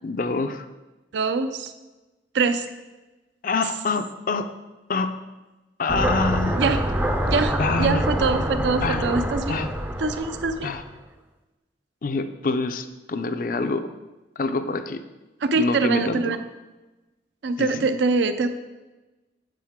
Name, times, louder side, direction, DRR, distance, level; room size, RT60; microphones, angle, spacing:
voice 1, 0.0-0.7 3.4-4.5 4.9-5.2 5.8-6.6 7.6-8.0 8.8-9.1 9.5-9.7 10.6-10.8 12.0-13.9 14.4-15.0 15.6-16.3 17.6-17.8, left 3 dB, 45° left, 10 dB, 0.4 m, -26 dB
voice 2, 1.1-1.7 2.3-2.7 6.6-6.8 7.3-7.5 7.8-9.6 10.0-10.7 15.4-16.4 17.4-18.5, right 4 dB, 70° right, 9 dB, 0.5 m, -23 dB
sound 1, 5.9-10.8, right 1 dB, 10° right, 0.4 m, -26 dB
7.6 x 7.2 x 3.6 m, 1.1 s
head